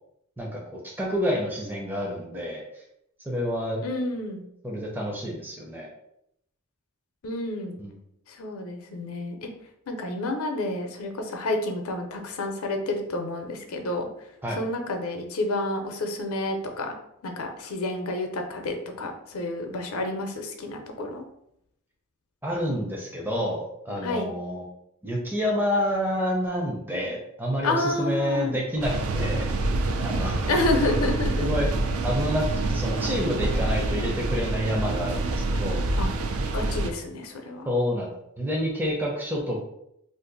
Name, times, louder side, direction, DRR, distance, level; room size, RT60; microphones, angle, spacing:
voice 1, 0.4-2.6 3.3-3.8 4.6-5.9 7.8-7.9 14.4-14.6 22.4-24.6 25.0-29.5 30.0-30.5 31.4-31.7 32.0-35.9 37.7-39.7, equal, 10° right, -2 dB, 0.5 m, -28 dB
voice 2, 3.8-4.4 7.2-7.8 8.3-9.5 9.9-14.1 14.6-17.0 17.2-21.2 24.0-24.3 27.6-28.6 30.5-31.5 36.0-36.1 36.5-37.7, left 2 dB, 80° left, 4 dB, 0.5 m, -29 dB
sound 1, 28.8-36.9, right 2 dB, 70° right, 0.4 m, -26 dB
2.5 x 2.4 x 3.8 m, 0.78 s
head